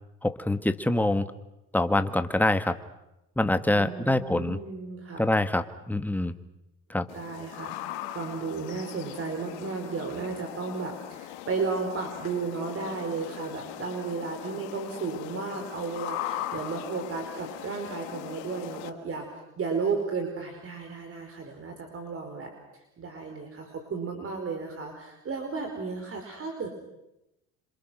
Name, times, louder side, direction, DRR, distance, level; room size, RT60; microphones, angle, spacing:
voice 1, 0.2-1.3 1.7-2.8 3.4-4.6 5.2-6.3 6.9-7.1, left 1 dB, 5° left, 9 dB, 1.7 m, -25 dB
voice 2, 3.7-5.3 7.1-19.3 19.6-22.5 23.0-26.7, right 4 dB, 40° right, 4 dB, 4.9 m, -34 dB
sound 1, 7.1-18.9, left 14 dB, 90° left, 1.8 m, -39 dB
27.0 x 26.5 x 6.4 m, 0.90 s
supercardioid pair, 85°, 34 cm